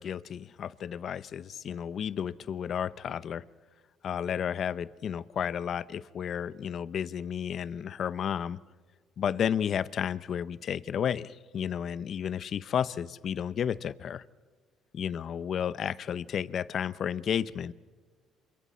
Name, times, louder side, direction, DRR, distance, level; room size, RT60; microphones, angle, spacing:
voice 1, 0.0-3.4 4.0-8.6 9.2-14.2 14.9-17.7, left 8 dB, 55° left, 18 dB, 0.7 m, -32 dB
27.5 x 26.5 x 4.3 m, 1.5 s
cardioid pair, 95°, 0 cm